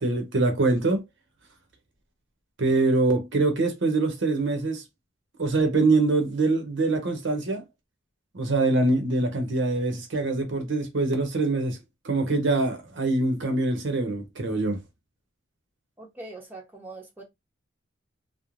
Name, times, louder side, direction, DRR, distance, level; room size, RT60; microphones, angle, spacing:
voice 1, 0.0-1.0 2.6-4.8 5.4-7.6 8.3-11.8 12.0-14.8, right 2 dB, 60° right, 0.7 m, -24 dB
voice 2, 16.0-17.2, right 2 dB, 10° right, 0.8 m, -42 dB
3.0 x 2.0 x 2.4 m
head